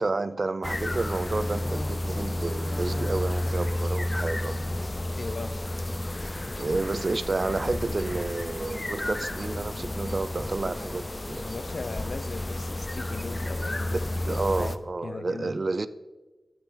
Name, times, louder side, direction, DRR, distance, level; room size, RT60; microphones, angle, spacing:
voice 1, 0.0-4.7 6.6-11.5 14.2-15.9, right 3 dB, 55° right, 0.5 m, -30 dB
sound 1, 0.6-14.8, left 1 dB, 30° left, 0.6 m, -31 dB
voice 2, 5.2-5.6 11.4-14.8 15.0-15.6, left 3 dB, 70° left, 0.6 m, -38 dB
9.1 x 9.0 x 5.1 m
cardioid pair, 50°, 0 cm